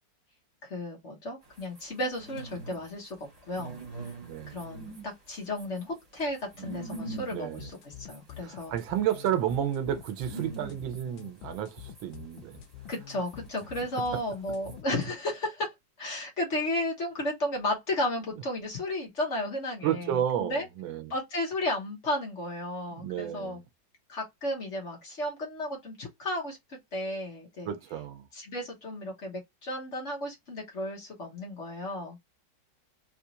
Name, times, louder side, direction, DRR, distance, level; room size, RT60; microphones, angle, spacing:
voice 1, 0.6-3.2 3.5-4.1 4.5-8.7 12.9-15.7 16.0-20.7 21.1-23.6 24.1-27.7 28.3-32.2, left 1 dB, 45° left, 1.2 m, -34 dB
sound 1, 1.4-14.8, right 3 dB, 30° right, 0.9 m, -45 dB
voice 2, 4.2-4.6 7.3-7.7 8.4-12.6 14.1-14.2 19.8-21.1 22.9-23.6 27.6-28.3, right 10 dB, 90° right, 1.5 m, -31 dB
sound 2, 7.6-15.1, left 10 dB, 85° left, 1.4 m, -46 dB
4.1 x 2.4 x 2.7 m
omnidirectional pair, 2.1 m